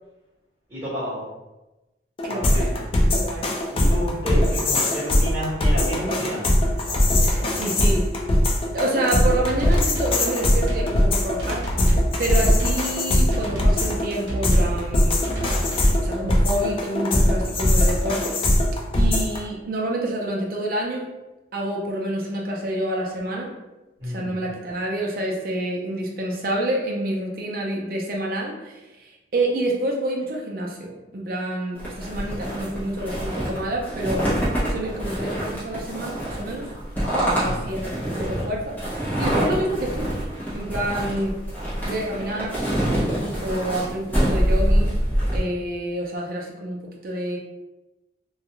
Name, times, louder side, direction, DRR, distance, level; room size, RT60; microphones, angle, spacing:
voice 1, 0.7-1.2 2.3-2.8 3.7-6.4 6.9-7.8 24.0-24.3 37.3-37.7, equal, 20° right, -13 dB, 1.3 m, -31 dB
sound 1, 2.2-19.4, left 1 dB, 30° left, 0.3 m, -21 dB
voice 2, 2.2-2.8 3.0-3.5 4.4-4.7 7.2-8.1 8.7-11.6 12.2-15.3 16.0-18.4 18.9-21.1 21.5-23.5 24.0-34.3 34.6-36.7 37.1-40.2 40.5-41.3 41.8-42.6 43.4-45.0 45.3-47.4, right 1 dB, 50° right, -1 dB, 0.5 m, -28 dB
sound 2, 9.5-10.2 10.4-10.9 11.4-12.1 12.4-12.8 13.3-14.0 14.3-14.8 15.2-16.1, right 1 dB, 80° right, 0.8 m, -28 dB
sound 3, 31.8-45.4, equal, 10° left, 0.8 m, -25 dB
2.3 x 2.3 x 2.9 m, 1.0 s
head